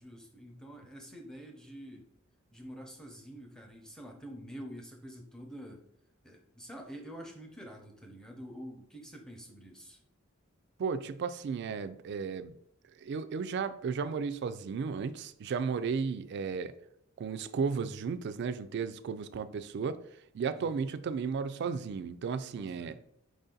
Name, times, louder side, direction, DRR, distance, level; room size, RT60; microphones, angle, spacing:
voice 1, 0.0-2.1 2.5-5.9 6.2-10.0 20.5-20.9 22.5-23.0, equal, 5° left, 0.7 m, -47 dB
voice 2, 10.8-12.6 13.0-16.7 17.2-20.0 20.3-23.0, right 5 dB, 55° right, 0.3 m, -34 dB
4.9 x 2.6 x 3.8 m
head